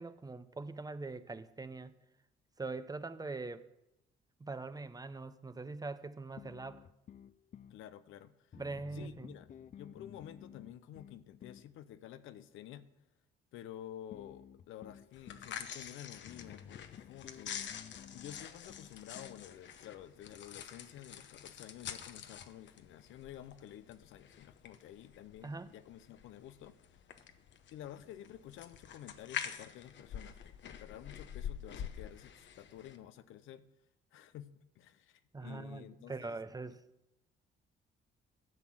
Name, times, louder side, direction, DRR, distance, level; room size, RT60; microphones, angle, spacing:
voice 1, 0.0-1.9 2.6-3.7 4.4-6.9 8.6-9.3 25.4-25.7 35.3-36.8, right 3 dB, 20° right, 0.6 m, -42 dB
sound 1, 6.4-7.8 8.5-11.7 14.1-15.5 16.3-19.5, left 8 dB, 40° left, 0.4 m, -53 dB
voice 2, 7.7-8.6 8.9-9.5 9.7-12.9 13.5-17.6 18.1-27.0 27.7-33.6 34.1-36.4, left 11 dB, 85° left, 0.7 m, -51 dB
sound 2, 15.1-33.0, left 8 dB, 65° left, 0.9 m, -47 dB
12.0 x 6.1 x 7.5 m
cardioid pair, 90°, 20 cm